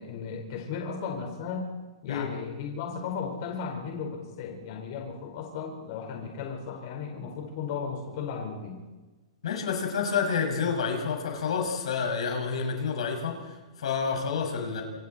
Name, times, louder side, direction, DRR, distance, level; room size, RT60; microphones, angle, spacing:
voice 1, 0.0-1.6 2.0-8.8, left 6 dB, 45° left, 1 dB, 4.6 m, -35 dB
voice 2, 9.4-14.8, left 6 dB, 80° left, 2 dB, 6.2 m, -29 dB
27.5 x 27.0 x 4.4 m, 1.2 s
hypercardioid pair, 160°, 3 cm